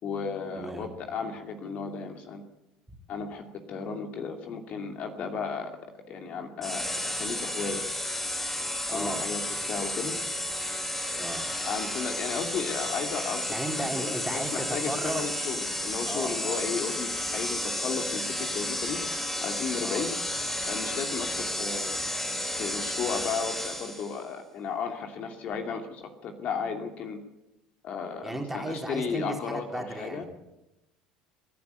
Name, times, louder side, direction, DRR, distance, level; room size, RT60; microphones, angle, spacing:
voice 1, 0.0-2.4 3.1-5.7 6.1-7.8 8.9-9.4 9.7-10.1 11.7-19.0 19.4-20.1 20.7-22.0 22.5-27.2 27.8-30.2, left 5 dB, 45° left, 4 dB, 2.6 m, -34 dB
voice 2, 0.6-0.9 8.9-9.3 11.1-11.4 13.5-15.3 16.1-16.7 19.8-20.0 28.2-30.3, right 1 dB, 5° right, 2 dB, 4.0 m, -35 dB
sound 1, 6.6-24.2, left 1 dB, 10° left, 5.1 m, -32 dB
26.0 x 11.0 x 9.4 m, 0.94 s
hypercardioid pair, 70°, 3 cm